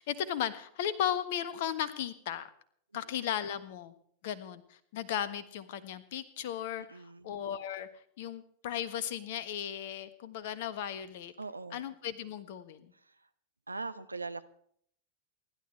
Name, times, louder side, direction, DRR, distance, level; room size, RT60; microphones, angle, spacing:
voice 1, 0.0-2.5 2.9-3.9 4.2-7.9 8.2-11.3 11.7-12.9, left 10 dB, 50° left, 14 dB, 1.4 m, -36 dB
voice 2, 6.9-7.3 11.4-11.8 13.7-14.4, right 3 dB, 80° right, 12 dB, 0.8 m, -40 dB
28.5 x 11.5 x 3.3 m, 0.63 s
figure-of-eight pair, 90°, 0 cm